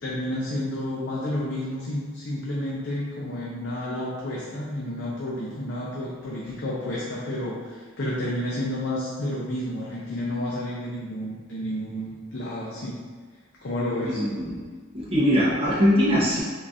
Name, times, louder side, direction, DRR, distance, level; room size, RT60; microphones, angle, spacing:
voice 1, 0.0-13.0 13.6-14.2, left 1 dB, 60° left, -6 dB, 0.6 m, -30 dB
voice 2, 14.0-14.7 14.9-16.4, equal, 30° right, -6 dB, 0.9 m, -22 dB
4.2 x 3.8 x 2.5 m, 1.5 s
head